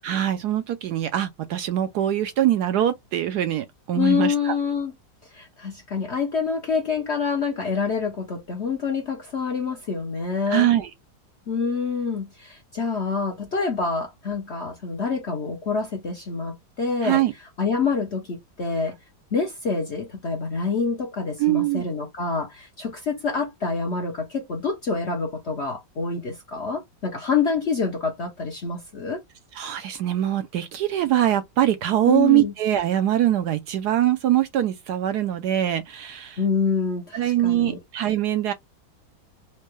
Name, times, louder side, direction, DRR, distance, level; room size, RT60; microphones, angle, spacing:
voice 1, 0.0-4.6 10.5-10.9 17.0-17.3 21.4-21.8 29.5-36.4 37.1-38.5, right 12 dB, 70° right, 1.0 m, -23 dB
voice 2, 3.9-4.9 5.3-10.7 11.5-17.2 17.6-19.0 19.3-29.2 32.0-32.5 36.4-37.8, left 5 dB, 55° left, 0.7 m, -26 dB
4.3 x 2.2 x 3.0 m
omnidirectional pair, 2.0 m